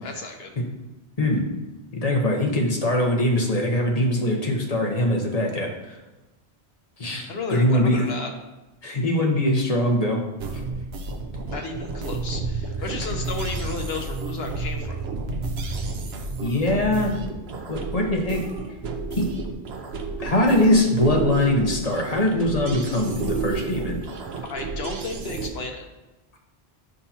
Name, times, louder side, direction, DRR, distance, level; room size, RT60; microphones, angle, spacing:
voice 1, 0.0-0.5 7.3-8.3 11.5-15.0 24.5-25.8, left 3 dB, 70° left, 3 dB, 1.1 m, -33 dB
voice 2, 1.2-1.5 1.9-6.0 7.0-8.0 8.8-10.2 16.4-17.1 17.7-18.4 19.1-19.3 20.2-24.0, left 1 dB, 35° left, 0 dB, 1.1 m, -22 dB
sound 1, 10.4-25.5, right 3 dB, 70° right, 1.0 m, -31 dB
8.1 x 5.7 x 2.8 m, 1.0 s
omnidirectional pair, 1.1 m